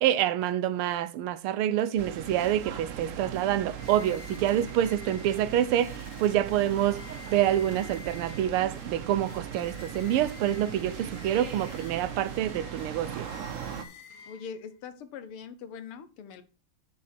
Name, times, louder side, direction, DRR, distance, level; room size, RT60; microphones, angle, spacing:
voice 1, 0.0-7.0 7.3-13.3, right 11 dB, 85° right, 1.5 m, -27 dB
sound 1, 2.0-13.8, right 8 dB, 65° right, 0.8 m, -39 dB
sound 2, 3.7-14.8, left 6 dB, 65° left, 1.7 m, -50 dB
voice 2, 14.3-16.4, left 6 dB, 80° left, 1.8 m, -42 dB
7.4 x 6.4 x 4.4 m
omnidirectional pair, 2.4 m